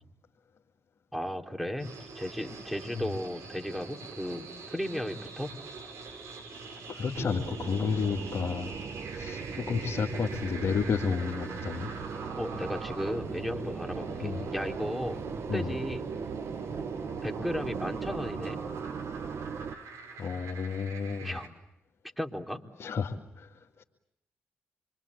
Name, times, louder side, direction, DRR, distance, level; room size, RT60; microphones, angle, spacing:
voice 1, 1.1-5.6 12.4-15.2 15.5-16.0 17.2-18.6 21.2-21.5 22.2-22.6, equal, ahead, 3 dB, 3.8 m, -35 dB
sound 1, 1.8-21.5, right 4 dB, 75° right, 5.0 m, -43 dB
voice 2, 6.9-8.8 9.1-11.9 14.2-14.4 15.5-15.7 20.2-21.4 22.8-23.8, left 6 dB, 60° left, 0 dB, 2.3 m, -32 dB
sound 2, 7.2-19.8, right 6 dB, 60° right, 1.3 m, -39 dB
27.0 x 24.5 x 8.3 m, 0.83 s
hypercardioid pair, 45°, 5 cm